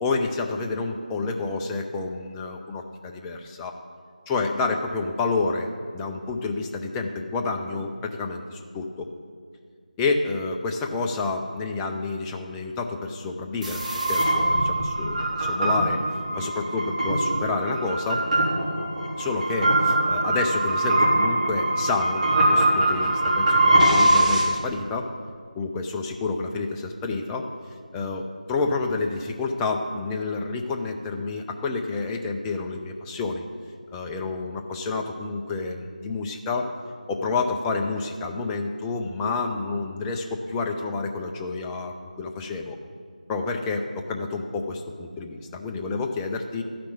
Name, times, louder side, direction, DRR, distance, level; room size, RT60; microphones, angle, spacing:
voice 1, 0.0-3.7 4.3-9.1 10.0-13.8 14.1-16.0 16.4-18.2 19.2-25.1 25.6-27.5 27.9-33.4 33.9-36.7 37.1-42.8 43.3-46.6, left 3 dB, 5° left, 2 dB, 0.4 m, -29 dB
sound 1, 13.6-24.4, right 1 dB, 55° right, 3.5 m, -22 dB
13.0 x 5.9 x 8.5 m, 2.1 s
figure-of-eight pair, 165°, 5 cm